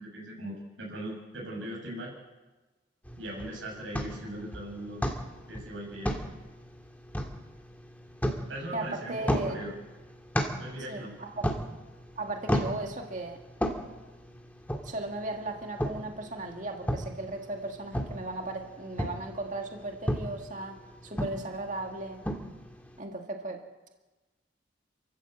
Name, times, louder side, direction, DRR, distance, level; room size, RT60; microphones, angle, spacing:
voice 1, 0.0-2.1 3.2-5.0 5.5-6.1 8.5-9.7 10.6-11.2, right 1 dB, 85° right, -3 dB, 6.8 m, -39 dB
sound 1, 3.0-23.0, equal, 10° left, 2.0 m, -36 dB
voice 2, 8.7-9.6 10.9-11.5 12.2-13.4 14.8-20.8 21.0-22.2 23.0-23.6, right 2 dB, 40° right, 2 dB, 2.0 m, -36 dB
28.5 x 14.0 x 8.0 m, 1.2 s
head